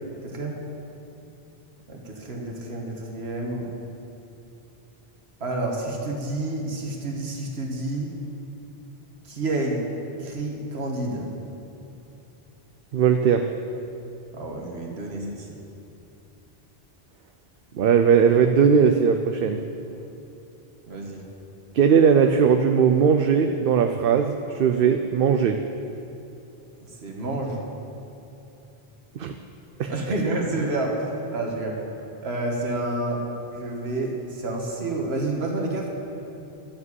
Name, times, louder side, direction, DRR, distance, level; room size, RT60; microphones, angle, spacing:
voice 1, 0.2-0.6 1.9-3.7 5.4-8.1 9.3-9.8 10.2-11.3 14.3-15.5 20.9-21.2 27.0-27.6 29.9-31.8 32.2-33.2 33.5-35.9, right 2 dB, 80° right, 0 dB, 1.7 m, -29 dB
voice 2, 12.9-13.5 17.8-19.6 21.7-25.6 29.2-29.3 29.8-29.9, right 6 dB, 65° right, 6 dB, 0.8 m, -19 dB
12.5 x 7.4 x 8.1 m, 2.9 s
omnidirectional pair, 1.1 m